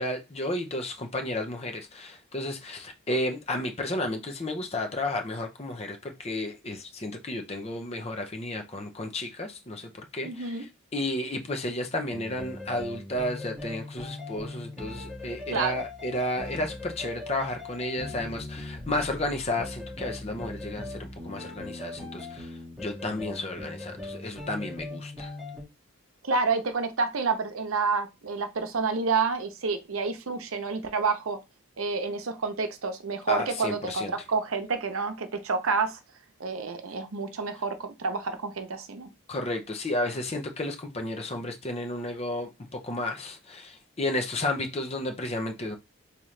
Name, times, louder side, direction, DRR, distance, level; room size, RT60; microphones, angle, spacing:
voice 1, 0.0-10.7 10.9-22.5 22.8-25.3 33.3-34.1 39.3-45.8, left 1 dB, 30° left, 0.5 m, -32 dB
voice 2, 10.2-10.7 15.5-15.8 26.2-31.4 31.8-36.0 36.4-39.1, right 4 dB, 75° right, 0.7 m, -29 dB
sound 1, 12.1-25.6, left 2 dB, ahead, 1.8 m, -40 dB
3.7 x 2.8 x 3.2 m
head